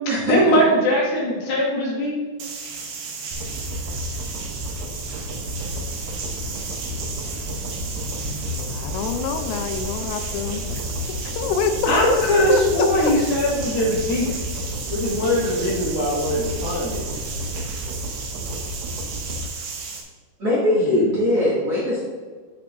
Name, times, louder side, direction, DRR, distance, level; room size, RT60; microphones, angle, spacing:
voice 1, 0.3-2.2 11.9-14.3 14.9-17.0 20.7-21.1, equal, 65° left, -4 dB, 3.1 m, -21 dB
sound 1, 2.4-20.0, right 5 dB, 70° right, 3.0 m, -34 dB
sound 2, 3.3-19.5, equal, 85° right, 1.9 m, -32 dB
voice 2, 8.4-12.2 12.5-13.1, left 5 dB, 85° left, 7 dB, 2.8 m, -26 dB
voice 3, 20.4-22.0, left 1 dB, 45° right, -8 dB, 2.3 m, -20 dB
11.0 x 6.0 x 2.6 m, 1.5 s
omnidirectional pair, 5.1 m